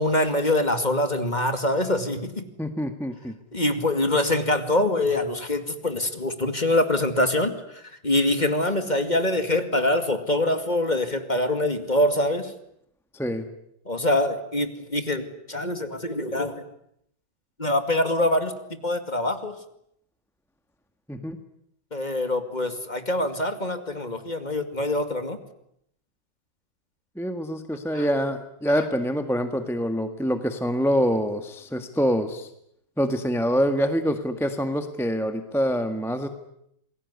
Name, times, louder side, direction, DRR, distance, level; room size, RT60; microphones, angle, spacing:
voice 1, 0.0-2.4 3.5-7.6 8.0-12.5 13.9-16.6 17.6-18.5 18.8-19.5 21.9-25.4 27.9-28.0, left 1 dB, 20° left, 8 dB, 2.3 m, -24 dB
voice 2, 2.6-3.3 13.1-13.4 21.1-21.4 27.1-32.5 33.0-36.3, equal, ahead, 7 dB, 1.4 m, -25 dB
28.0 x 21.5 x 9.7 m, 0.74 s
omnidirectional pair, 2.2 m